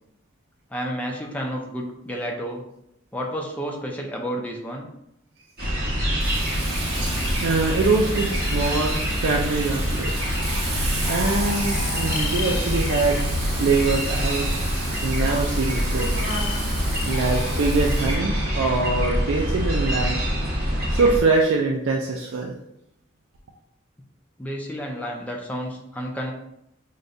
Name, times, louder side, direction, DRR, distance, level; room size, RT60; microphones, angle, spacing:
voice 1, 0.7-2.6 3.1-4.9 24.4-26.3, equal, 5° left, -1 dB, 0.5 m, -31 dB
sound 1, 5.6-21.2, equal, 50° right, 1.4 m, -25 dB
Frying (food), 6.2-18.1, right 2 dB, 75° right, 1.3 m, -34 dB
voice 2, 7.4-10.2 11.1-13.2 13.6-14.5 15.0-16.2 17.1-20.2 20.9-22.5, right 3 dB, 90° right, -1 dB, 0.4 m, -23 dB
sound 2, 10.2-19.8, left 2 dB, 65° left, 0.3 m, -33 dB
6.3 x 2.2 x 2.6 m, 0.80 s
head